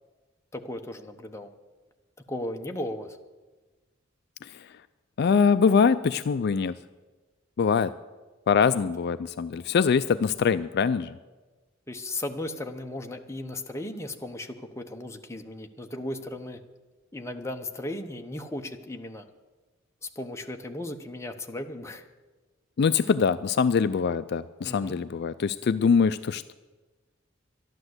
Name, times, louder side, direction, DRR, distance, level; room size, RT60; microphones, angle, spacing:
voice 1, 0.5-1.5 2.3-3.2 11.9-16.6 17.1-19.3 20.0-22.1 24.6-25.0, left 1 dB, 15° left, 4 dB, 0.9 m, -36 dB
voice 2, 5.2-6.7 7.6-7.9 8.5-11.2 22.8-26.5, left 6 dB, 55° left, 13 dB, 0.4 m, -23 dB
12.0 x 11.5 x 7.9 m, 1.3 s
head